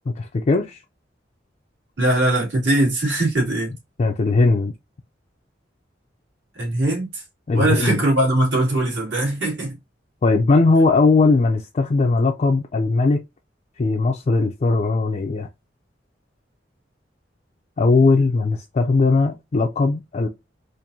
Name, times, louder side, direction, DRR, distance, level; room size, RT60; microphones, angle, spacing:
voice 1, 0.1-0.8 4.0-4.7 7.5-8.0 10.2-13.2 13.8-15.5 17.8-20.3, left 3 dB, 40° left, 0.4 m, -19 dB
voice 2, 2.0-3.7 6.5-7.2 7.5-9.8, right 1 dB, 75° right, 2.4 m, -21 dB
4.3 x 2.6 x 2.6 m
head